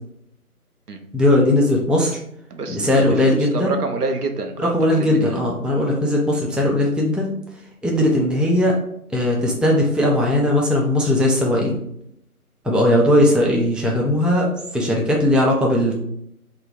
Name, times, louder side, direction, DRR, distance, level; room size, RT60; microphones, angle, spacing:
voice 1, 1.1-2.2 2.7-3.7 4.7-7.3 7.8-8.7 9.1-11.8 12.6-14.5 14.7-16.0, left 1 dB, ahead, -2 dB, 0.3 m, -18 dB
voice 2, 2.5-4.7 5.0-5.4, right 3 dB, 80° right, 5 dB, 0.6 m, -27 dB
2.3 x 2.2 x 3.3 m, 0.74 s
figure-of-eight pair, 165°, 45 cm